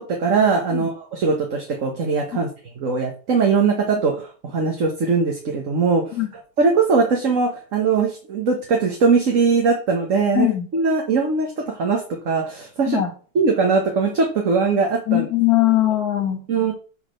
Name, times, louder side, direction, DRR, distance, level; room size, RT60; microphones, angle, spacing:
voice 1, 0.0-2.5 2.8-6.2 6.6-10.5 10.7-13.0 13.3-15.2 16.5-16.7, right 4 dB, 55° right, 1 dB, 1.6 m, -20 dB
voice 2, 10.3-10.7 12.9-13.1 15.1-16.4, left 14 dB, 65° left, 6 dB, 2.0 m, -20 dB
6.6 x 4.9 x 6.3 m, 0.39 s
omnidirectional pair, 1.7 m